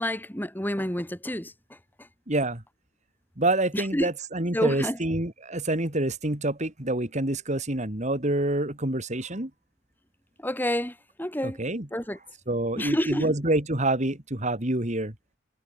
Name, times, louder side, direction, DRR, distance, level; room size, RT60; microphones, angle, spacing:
voice 1, 0.0-1.5 3.7-4.1 4.5-5.0 10.4-11.6 11.9-12.2 12.8-13.3, left 1 dB, 10° left, 2.9 m, -29 dB
voice 2, 2.3-2.6 3.4-9.5 11.4-11.9 12.5-15.1, right 1 dB, 35° right, 2.7 m, -27 dB
head